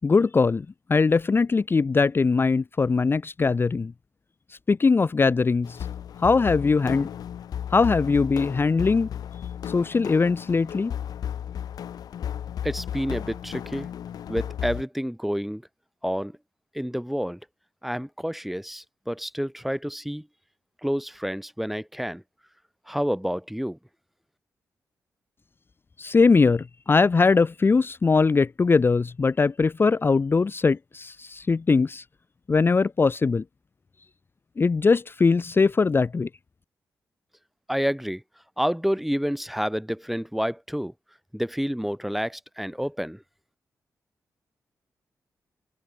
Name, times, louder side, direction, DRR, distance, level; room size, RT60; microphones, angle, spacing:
voice 1, 0.0-3.9 4.7-5.8 6.2-7.1 7.7-9.1 9.7-10.9 26.0-32.0 32.5-33.4 34.6-36.3, left 4 dB, 35° left, 0.5 m, -21 dB
sound 1, 5.6-14.8, left 9 dB, 80° left, 1.2 m, -34 dB
voice 2, 12.6-13.9 14.3-15.6 16.0-16.4 16.7-17.4 17.8-20.3 20.8-22.2 22.9-23.8 37.7-38.2 38.6-40.9 41.3-43.2, equal, 5° right, 0.9 m, -29 dB
open air
cardioid pair, 70°, 6 cm